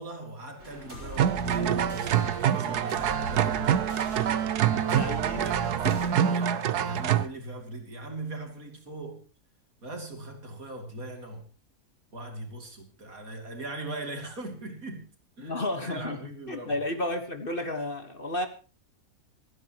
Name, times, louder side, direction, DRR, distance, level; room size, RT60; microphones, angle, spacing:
voice 1, 0.0-3.8 4.8-9.2 9.8-11.5 12.1-15.1 15.4-16.7, right 2 dB, 65° right, 3.4 m, -40 dB
sound 1, 0.6-6.1, right 1 dB, 45° right, 5.5 m, -41 dB
sound 2, 1.2-7.3, right 9 dB, 85° right, 1.4 m, -26 dB
voice 2, 4.9-5.5 15.4-16.2 16.5-18.5, left 1 dB, 35° left, 1.6 m, -32 dB
27.0 x 9.9 x 3.0 m
omnidirectional pair, 1.6 m